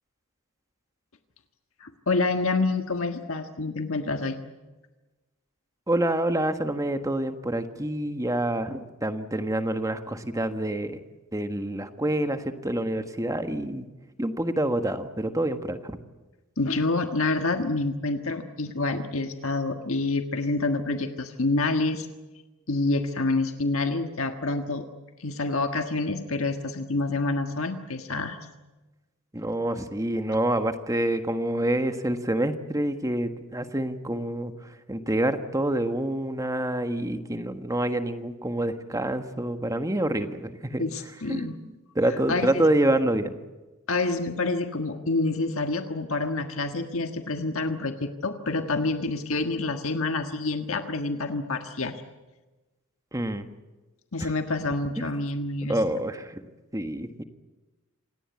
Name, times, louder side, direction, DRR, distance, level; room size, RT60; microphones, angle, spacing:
voice 1, 1.8-4.4 16.6-22.1 22.7-24.8 25.2-28.4 40.8-41.5 42.3-42.7 43.9-52.0 54.1-55.8, left 3 dB, 65° left, 6 dB, 1.6 m, -27 dB
voice 2, 5.9-11.0 11.3-13.8 14.2-16.0 29.3-40.8 41.3-43.3 53.1-53.4 54.2-54.3 55.7-56.4 56.7-57.2, right 1 dB, 15° right, 8 dB, 1.5 m, -27 dB
27.0 x 18.5 x 8.4 m, 1.2 s
head